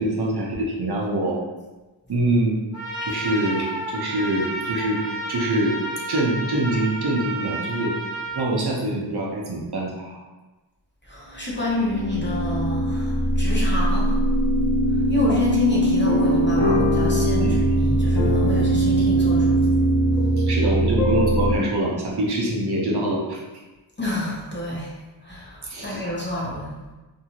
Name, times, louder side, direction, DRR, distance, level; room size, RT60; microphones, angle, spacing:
voice 1, 0.0-1.4 2.1-2.6 3.0-5.0 5.3-5.8 6.1-7.9 8.4-10.2 17.4-17.8 20.4-23.4 25.6-26.0, right 1 dB, 60° right, -4 dB, 0.7 m, -24 dB
Trumpet, 2.7-8.4, right 1 dB, 85° right, 1.0 m, -31 dB
voice 2, 11.0-14.2 15.1-19.6 24.0-24.9 25.2-26.8, left 1 dB, 25° left, -5 dB, 0.8 m, -29 dB
sound 1, 11.4-21.5, right 1 dB, 15° right, 1.3 m, -21 dB
sound 2, 16.1-21.5, left 3 dB, 80° left, 0.7 m, -27 dB
2.7 x 2.3 x 2.9 m, 1.1 s
wide cardioid pair, 45°, 45 cm